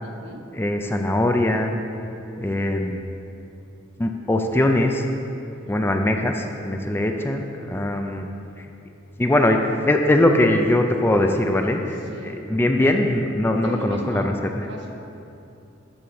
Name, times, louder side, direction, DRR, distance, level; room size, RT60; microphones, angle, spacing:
voice 1, 0.0-0.5 5.6-5.9 11.9-12.4 12.8-12.9 13.6-14.3 14.6-14.9, right 1 dB, 65° right, 1 dB, 1.0 m, -36 dB
voice 2, 0.5-1.8 2.4-3.1 4.0-5.0 5.7-8.3 8.6-8.7 9.2-14.3, left 1 dB, 10° left, 4 dB, 0.4 m, -21 dB
9.7 x 3.8 x 6.8 m, 2.8 s
head